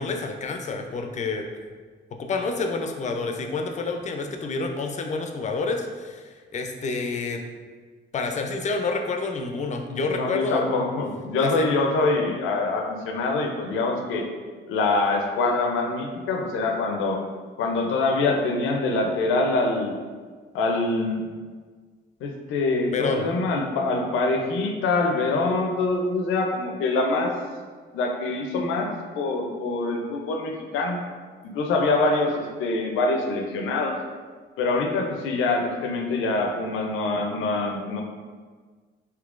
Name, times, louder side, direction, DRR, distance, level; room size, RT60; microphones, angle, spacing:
voice 1, 0.0-1.5 2.1-7.4 8.1-10.6 11.4-11.7 22.9-23.3, left 3 dB, 35° left, 4 dB, 0.4 m, -28 dB
voice 2, 9.9-14.2 14.7-17.2 17.6-20.0 20.5-21.2 22.2-27.3 27.9-28.9 29.2-31.0 31.4-33.9 34.6-38.0, left 3 dB, 90° left, 2 dB, 0.5 m, -24 dB
3.7 x 2.7 x 2.4 m, 1.5 s
cardioid pair, 90°, 20 cm